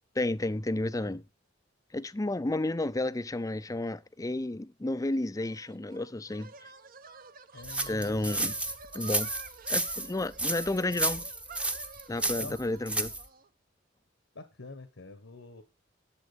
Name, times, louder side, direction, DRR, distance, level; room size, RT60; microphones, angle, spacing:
voice 1, 0.2-1.2 1.9-6.5 7.9-8.5 8.9-9.3 9.7-11.2 12.1-13.1, left 2 dB, 20° left, 0.5 m, -31 dB
sound 1, 5.4-13.5, right 5 dB, 50° right, 0.9 m, -50 dB
voice 2, 7.5-8.6 12.3-12.6 14.3-15.6, left 3 dB, 80° left, 1.4 m, -46 dB
sound 2, 7.6-13.3, right 1 dB, 5° right, 0.8 m, -32 dB
11.5 x 7.6 x 5.1 m
head